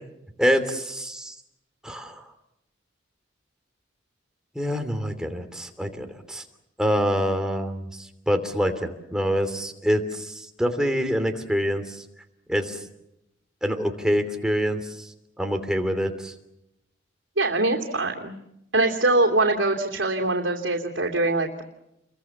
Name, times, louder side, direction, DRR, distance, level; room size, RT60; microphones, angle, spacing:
voice 1, 0.4-1.3 1.8-2.2 4.5-6.4 6.8-12.0 12.5-12.8 13.6-15.1 15.4-16.3, equal, 5° right, 5 dB, 2.9 m, -26 dB
voice 2, 17.4-18.3 18.7-21.6, right 2 dB, 80° right, 1 dB, 3.0 m, -23 dB
29.5 x 23.0 x 7.2 m, 0.84 s
head